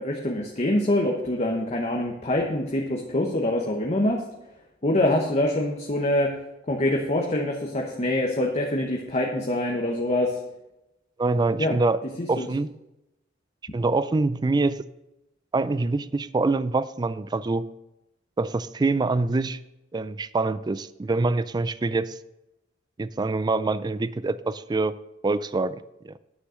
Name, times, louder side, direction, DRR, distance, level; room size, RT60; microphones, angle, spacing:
voice 1, 0.0-4.2 4.8-6.3 6.7-10.3 11.6-11.8 12.2-12.5, left 1 dB, 35° left, 0 dB, 1.1 m, -25 dB
voice 2, 11.2-12.0 12.3-12.7 13.7-14.9 15.5-17.7 18.4-19.6 19.9-22.2 23.0-25.0 25.2-26.2, right 3 dB, 20° right, 16 dB, 0.3 m, -25 dB
9.7 x 6.4 x 6.3 m, 0.91 s
head